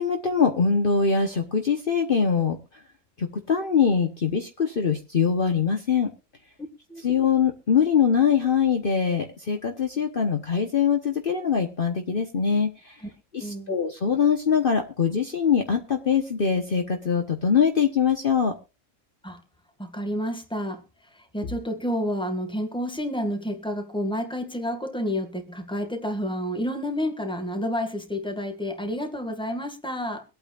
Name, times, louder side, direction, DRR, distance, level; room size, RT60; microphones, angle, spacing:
voice 1, 0.0-2.6 3.2-6.1 7.0-13.0 13.3-18.5, left 6 dB, 45° left, 1.2 m, -23 dB
voice 2, 13.4-13.8 19.2-19.4 19.8-20.8 21.1-30.2, equal, 5° left, 1.7 m, -30 dB
24.0 x 8.8 x 2.4 m
omnidirectional pair, 1.4 m